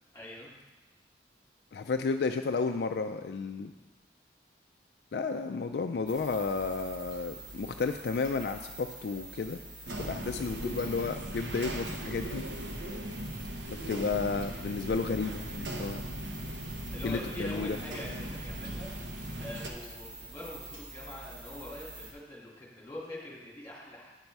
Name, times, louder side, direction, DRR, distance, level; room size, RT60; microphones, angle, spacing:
voice 1, 0.1-0.5 16.9-18.9 19.4-24.1, left 1 dB, 15° left, -5 dB, 2.4 m, -43 dB
voice 2, 1.7-3.7 5.1-9.6 10.0-12.4 13.9-16.0 17.0-17.8, left 4 dB, 65° left, 6 dB, 0.3 m, -32 dB
sound 1, 6.1-22.1, right 1 dB, 30° right, 1.6 m, -46 dB
sound 2, 9.9-19.7, right 1 dB, 90° right, 0.9 m, -39 dB
9.7 x 5.4 x 4.6 m, 1.2 s
head